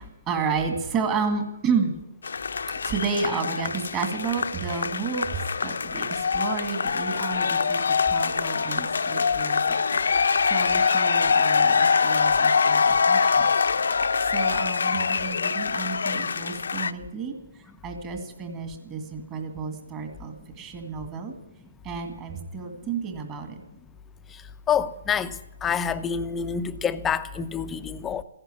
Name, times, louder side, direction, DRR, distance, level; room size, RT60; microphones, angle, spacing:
voice 1, 0.0-1.9 2.9-7.8 8.1-9.6 10.2-13.5 14.3-17.3 17.8-21.3 21.8-23.6, right 5 dB, 20° right, 2.1 m, -31 dB
sound 1, 2.2-16.9, left 5 dB, 75° left, 0.8 m, -24 dB
voice 2, 24.7-25.3 25.6-28.2, left 7 dB, 10° left, 0.7 m, -27 dB
15.5 x 11.0 x 8.4 m
hypercardioid pair, 150°, 0 cm